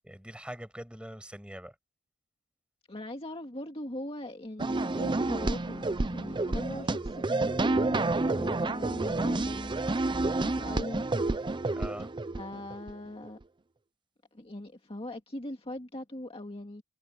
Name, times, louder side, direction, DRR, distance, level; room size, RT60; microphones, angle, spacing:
voice 1, 0.0-1.8 11.7-12.1, equal, 5° right, 5.9 m, -43 dB
voice 2, 2.9-9.8 10.4-11.2 12.3-13.4 14.3-16.8, left 1 dB, 25° left, 2.0 m, -40 dB
sound 1, 4.6-12.9, right 2 dB, 20° right, 0.6 m, -29 dB
head